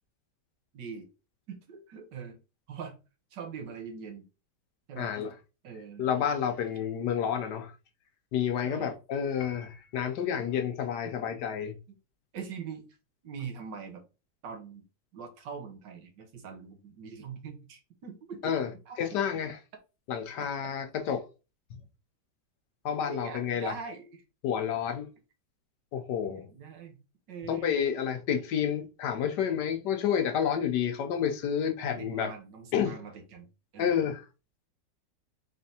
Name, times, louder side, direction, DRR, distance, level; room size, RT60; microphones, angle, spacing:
voice 1, 0.7-1.1 1.5-2.4 2.7-3.0 3.3-4.3 4.9-5.1 5.6-6.1 8.6-8.9 10.3-10.5 11.9-12.0 12.3-12.9 13.2-14.0 14.4-14.9 15.1-18.6 18.9-19.2 23.1-24.2 26.2-27.0 27.3-27.8 31.8-33.5 33.7-34.1, right 6 dB, 75° right, 1.6 m, -42 dB
voice 2, 5.0-5.3 6.0-7.7 8.3-11.7 18.4-18.7 19.0-19.6 20.1-21.3 22.8-23.7 24.4-25.1 25.9-26.5 27.5-32.3 32.7-32.9 33.8-34.2, left 8 dB, 75° left, 1.2 m, -30 dB
Piano, 9.4-10.3, left 6 dB, 90° left, 0.6 m, -50 dB
4.1 x 3.3 x 2.7 m
omnidirectional pair, 2.0 m